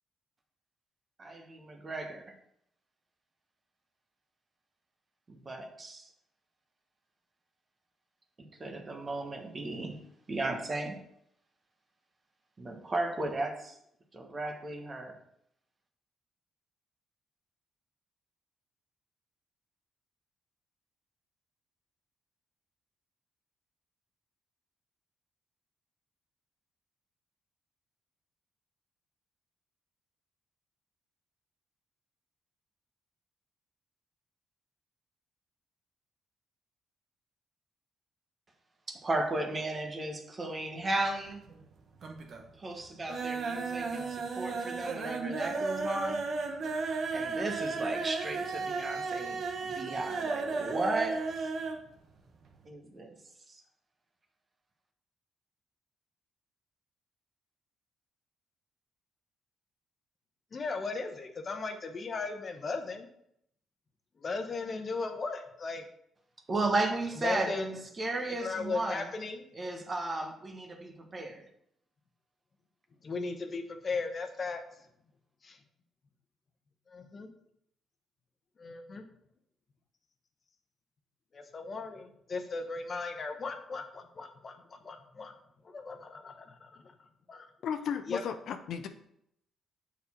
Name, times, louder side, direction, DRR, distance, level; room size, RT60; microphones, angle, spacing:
voice 1, 1.2-2.3 5.3-6.1 8.6-10.0 10.3-11.0 12.6-13.7 14.1-15.1 38.9-41.4 42.6-46.2 47.1-51.5 52.6-53.2 53.5-53.6 66.5-67.7 68.0-69.1 69.5-71.4, right 2 dB, 30° right, 1.2 m, -35 dB
sound 1, 41.1-41.7 42.0-42.5 42.8-51.8 52.1-52.2 52.5-52.6, right 4 dB, 55° right, 0.9 m, -34 dB
voice 2, 60.5-63.1 64.2-65.8 67.2-67.8 68.4-69.4 73.0-74.6 75.4-75.6 76.9-77.3 78.6-79.0 81.3-84.6 84.8-85.3 85.6-86.8 87.3-87.5 88.1-88.2, left 4 dB, 40° left, 0.9 m, -37 dB
voice 3, 87.6-88.9, left 7 dB, 70° left, 0.5 m, -35 dB
6.7 x 4.3 x 4.3 m
cardioid pair, 90°, 0 cm